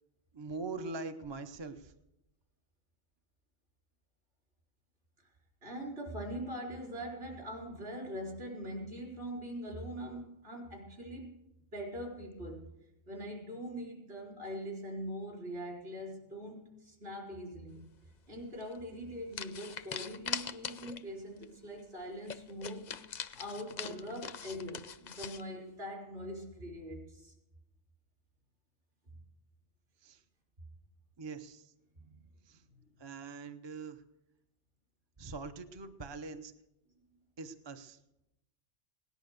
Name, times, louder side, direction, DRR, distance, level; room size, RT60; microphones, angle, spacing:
voice 1, 0.3-1.9 30.0-30.2 31.2-31.7 32.5-32.6 33.0-34.0 35.2-36.5 37.4-38.0, right 4 dB, 30° right, 8 dB, 0.6 m, -43 dB
voice 2, 5.6-11.4 11.7-12.7 13.1-17.8 18.3-22.9 23.3-27.3 31.9-32.2 32.8-32.9, equal, 55° right, -2 dB, 4.5 m, -42 dB
sound 1, 18.6-18.8 19.3-21.1 21.4-21.5 21.8-21.9 22.3-25.4, left 7 dB, 50° left, 0.6 m, -42 dB
18.0 x 10.5 x 6.6 m, 0.91 s
omnidirectional pair, 1.3 m